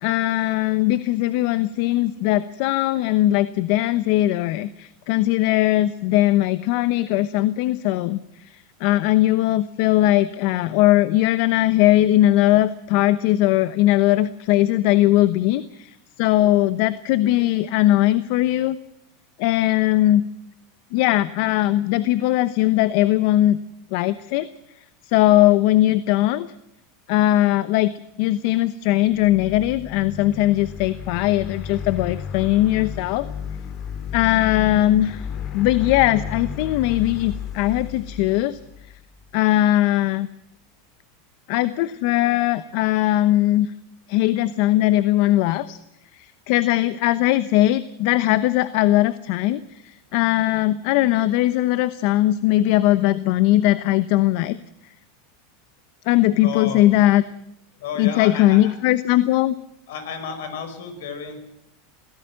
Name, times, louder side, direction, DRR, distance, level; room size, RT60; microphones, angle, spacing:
voice 1, 0.0-18.8 19.4-20.2 20.9-23.6 23.9-24.5 25.0-26.5 27.1-27.9 28.2-33.3 34.1-35.3 35.5-38.6 39.3-40.3 41.5-43.7 44.1-45.8 46.1-54.6 56.1-57.2 58.0-59.5, left 15 dB, 65° left, 14 dB, 0.9 m, -19 dB
sound 1, 29.1-39.3, left 7 dB, 45° left, 2.3 m, -33 dB
voice 2, 56.4-56.8 57.8-58.8 59.9-61.4, left 7 dB, 80° left, 9 dB, 5.6 m, -32 dB
23.0 x 16.0 x 7.7 m, 0.80 s
supercardioid pair, 120°, 0 cm